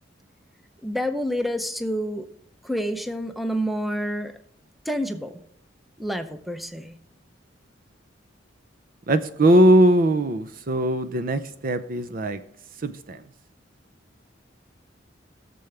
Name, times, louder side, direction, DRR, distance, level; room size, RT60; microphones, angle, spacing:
voice 1, 0.8-2.3 2.6-4.3 4.9-5.4 6.0-7.0, equal, ahead, 0.7 m, -28 dB
voice 2, 9.1-12.4 12.8-13.2, right 1 dB, 50° right, 0.6 m, -20 dB
19.5 x 6.9 x 3.3 m
head